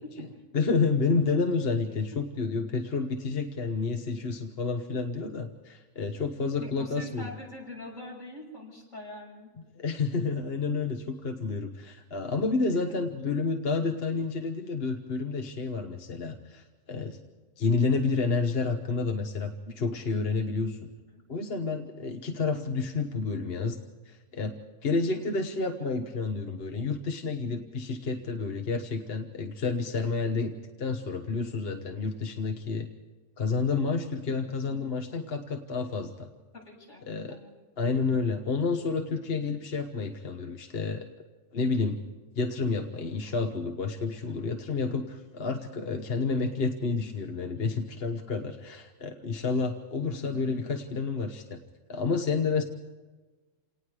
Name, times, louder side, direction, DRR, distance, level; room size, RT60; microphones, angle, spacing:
voice 1, 0.0-0.4 2.1-2.2 6.6-9.5 11.5-11.6 12.7-12.8 21.1-21.2 25.1-25.2 36.5-37.5 44.2-44.4, left 1 dB, 75° left, -1 dB, 7.4 m, -44 dB
voice 2, 0.5-7.3 9.8-17.2 17.6-20.9 21.3-23.8 24.1-24.5 24.8-30.5 30.8-32.9 33.4-36.3 37.1-37.4 37.8-41.1 41.5-42.0 42.3-51.6 51.9-52.6, left 4 dB, 50° left, 5 dB, 1.3 m, -30 dB
28.5 x 19.0 x 4.9 m, 1.3 s
omnidirectional pair, 1.3 m